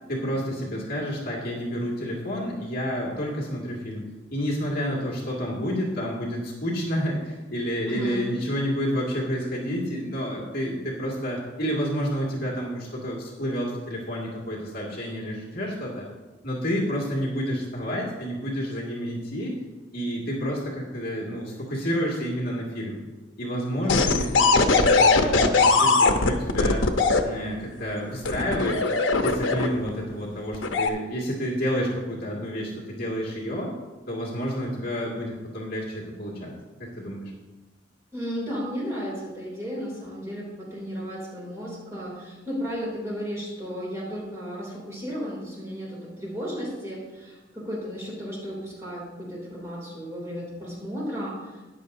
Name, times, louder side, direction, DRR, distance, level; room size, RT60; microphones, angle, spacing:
voice 1, 0.1-4.0 4.3-16.0 16.4-19.6 19.9-23.0 23.4-26.8 27.2-28.8 29.1-33.7 34.1-36.5 36.8-37.3, equal, 55° left, -4 dB, 2.2 m, -29 dB
voice 2, 7.9-8.2 38.1-51.6, equal, 15° right, -5 dB, 2.9 m, -34 dB
sound 1, 23.9-27.2 28.2-29.9 30.5-30.9, left 3 dB, 85° left, 0.9 m, -20 dB
14.0 x 10.5 x 2.7 m, 1.2 s
head